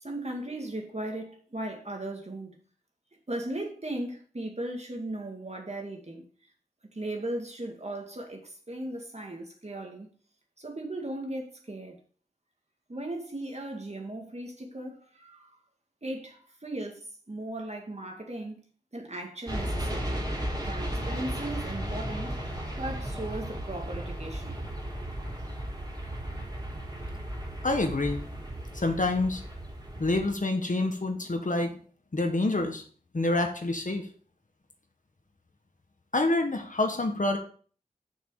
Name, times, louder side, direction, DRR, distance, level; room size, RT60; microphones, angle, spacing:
voice 1, 0.0-2.6 3.3-6.2 6.9-10.1 10.6-12.0 12.9-15.5 16.0-18.6 18.9-20.2 20.6-22.3 22.8-24.6, right 1 dB, 50° right, 2.1 m, -37 dB
sound 1, 19.5-30.3, right 1 dB, 25° right, 3.4 m, -35 dB
voice 2, 27.6-28.2 28.7-29.4 30.0-31.8 32.1-32.8 33.1-34.1 36.1-37.4, left 2 dB, 60° left, 1.5 m, -27 dB
6.6 x 6.4 x 4.9 m
wide cardioid pair, 45°, 15 cm